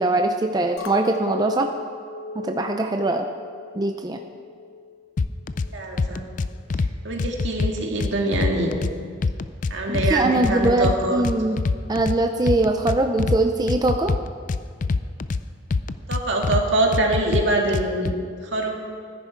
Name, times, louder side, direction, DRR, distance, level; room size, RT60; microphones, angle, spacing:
voice 1, 0.0-1.7 2.4-3.3 3.7-4.2 9.9-11.6 11.9-14.2, right 2 dB, 20° right, 4 dB, 0.5 m, -22 dB
Chink clink, 0.8-5.2 5.5-6.1, left 4 dB, 90° left, 0.7 m, -37 dB
sound 1, 5.2-5.7 6.0-6.9 7.2-8.9 9.2-10.1 10.4-12.2 12.5-13.4 13.7-15.4 15.7-16.6 16.9-18.1, left 4 dB, 45° left, 0.4 m, -24 dB
voice 2, 5.7-6.2 7.0-8.7 9.7-11.2 16.1-18.2 18.5-18.7, right 2 dB, 70° right, 0 dB, 1.9 m, -24 dB
15.0 x 10.5 x 4.5 m, 2.1 s
head